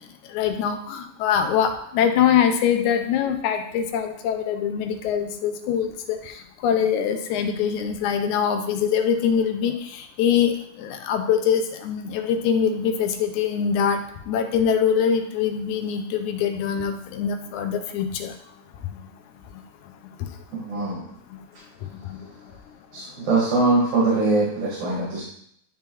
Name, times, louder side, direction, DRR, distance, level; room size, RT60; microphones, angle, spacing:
voice 1, 0.3-14.0 14.3-18.3 22.1-22.2, left 8 dB, 90° left, 6 dB, 2.1 m, -23 dB
voice 2, 20.5-21.0 22.9-25.2, right 3 dB, 75° right, -6 dB, 3.0 m, -22 dB
10.5 x 3.7 x 3.0 m, 0.68 s
omnidirectional pair, 3.4 m